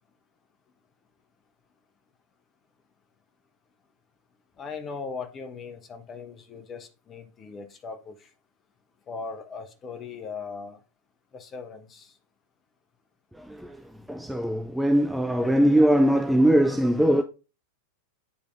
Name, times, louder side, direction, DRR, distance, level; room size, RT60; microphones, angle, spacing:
voice 1, 4.6-8.3 9.1-10.8 11.3-12.1, left 5 dB, 25° left, 1.2 m, -39 dB
voice 2, 13.3-17.2, right 1 dB, ahead, 0.5 m, -21 dB
9.7 x 3.4 x 3.5 m
figure-of-eight pair, 90°, 0 cm